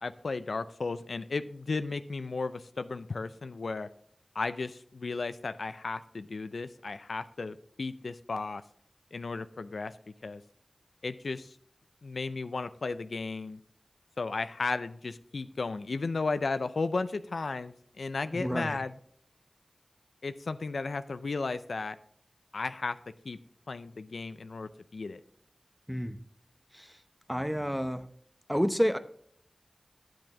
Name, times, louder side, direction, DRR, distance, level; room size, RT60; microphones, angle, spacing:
voice 1, 0.0-3.9 4.3-8.6 9.1-9.9 10.2-10.4 11.0-11.6 12.0-13.6 14.2-18.9 20.2-22.0 22.5-23.0 23.2-23.4 23.7-25.2, left 3 dB, 90° left, 12 dB, 0.4 m, -34 dB
voice 2, 18.3-18.8 25.9-26.2 26.7-26.9 27.3-28.1 28.5-29.0, equal, ahead, 10 dB, 0.8 m, -29 dB
8.9 x 7.8 x 3.6 m, 0.62 s
wide cardioid pair, 45°, 0 cm